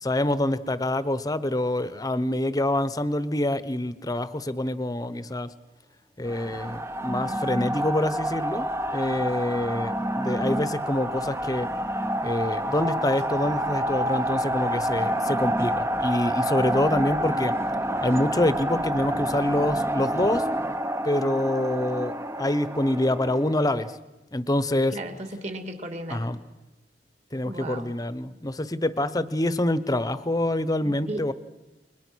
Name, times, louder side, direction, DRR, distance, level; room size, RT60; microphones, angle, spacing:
voice 1, 0.0-5.5 6.2-8.7 8.9-11.7 12.2-17.5 18.0-20.5 21.0-22.1 22.4-23.9 24.3-25.0 26.1-26.4 27.3-31.3, left 1 dB, 20° left, 14 dB, 0.9 m, -26 dB
sound 1, 6.3-24.0, right 1 dB, 15° right, 0.7 m, -28 dB
voice 2, 24.9-26.3 27.4-27.9 30.8-31.2, right 1 dB, 40° right, 6 dB, 2.6 m, -35 dB
29.5 x 22.0 x 6.3 m, 1.0 s
head